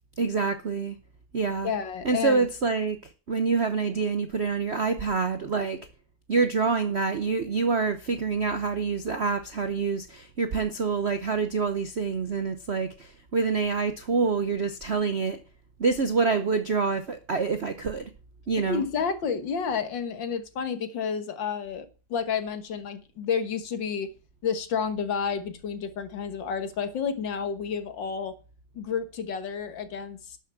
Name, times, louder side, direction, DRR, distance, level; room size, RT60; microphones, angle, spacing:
voice 1, 0.2-1.0 1.3-1.7 2.0-5.8 6.3-15.4 15.8-18.1 18.5-18.8, right 4 dB, 60° right, 0.6 m, -26 dB
voice 2, 1.6-2.5 18.7-24.1 24.4-28.3 28.8-30.2, left 6 dB, 60° left, 1.9 m, -30 dB
12.0 x 7.2 x 7.3 m
omnidirectional pair, 2.3 m